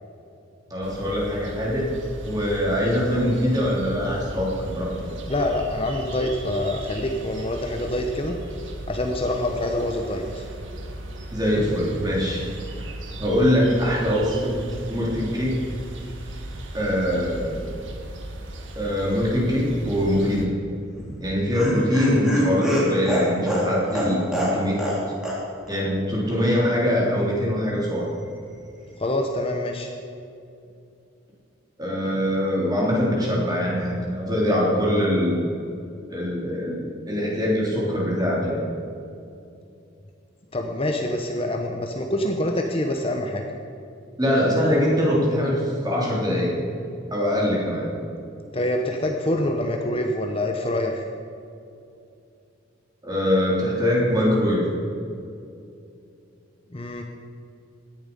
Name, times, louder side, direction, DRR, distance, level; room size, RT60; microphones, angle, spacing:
voice 1, 0.7-1.9 2.2-5.1 11.3-12.5 13.2-15.6 16.7-17.7 18.7-20.5 21.2-24.8 25.7-28.1 31.8-35.5 36.1-38.6 44.2-47.9 53.0-54.7, equal, 20° right, -3 dB, 3.3 m, -23 dB
sound 1, 0.8-20.5, right 1 dB, 70° right, 1.7 m, -37 dB
voice 2, 5.3-8.4 8.9-10.4 29.0-29.9 40.5-43.4 48.5-51.0 56.7-57.0, left 1 dB, 30° left, 2 dB, 0.9 m, -26 dB
Laughter, 20.9-25.0 25.2-25.4 25.7-25.8, equal, 5° right, 3.2 m, -24 dB
17.0 x 11.0 x 5.3 m, 2.6 s
head